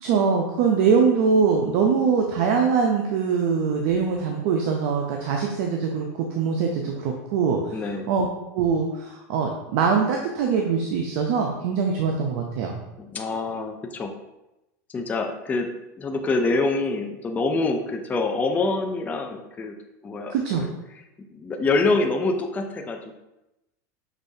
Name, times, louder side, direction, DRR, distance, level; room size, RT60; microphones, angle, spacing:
voice 1, 0.0-7.8 8.1-8.3 8.5-12.7 20.3-20.7, right 5 dB, 65° right, 1 dB, 0.6 m, -23 dB
voice 2, 7.7-8.1 13.0-14.1 14.9-15.7 16.0-19.7 20.0-20.7 21.3-23.1, left 3 dB, 15° left, 3 dB, 0.5 m, -25 dB
6.2 x 3.1 x 2.7 m, 0.94 s
supercardioid pair, 130°, 9 cm